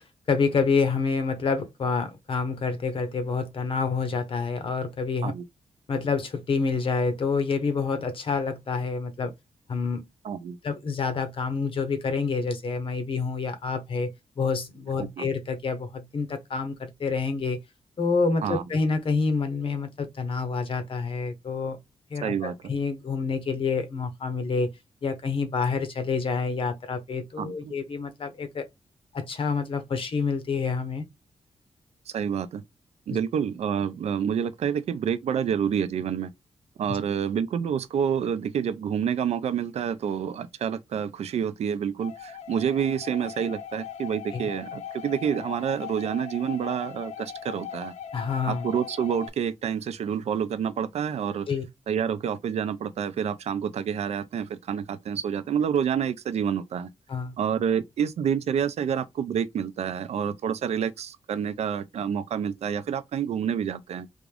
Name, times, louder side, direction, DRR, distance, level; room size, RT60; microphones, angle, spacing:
voice 1, 0.0-5.3 5.9-9.3 9.7-10.1 10.6-17.6 18.0-21.8 22.1-24.7 25.0-28.7 29.1-31.0 36.9-37.0 44.3-44.4 48.1-48.7 51.5-51.6 57.1-57.4, left 4 dB, 50° left, 0.8 m, -28 dB
voice 2, 10.2-10.6 15.0-15.2 18.4-18.6 22.2-22.5 27.4-27.7 32.1-32.6 33.1-36.3 36.8-47.9 48.5-51.5 51.9-56.9 57.4-64.1, right 8 dB, 70° right, 0.5 m, -28 dB
sound 1, 42.0-49.3, left 8 dB, 80° left, 0.6 m, -39 dB
3.5 x 2.5 x 3.3 m
wide cardioid pair, 135°, 11 cm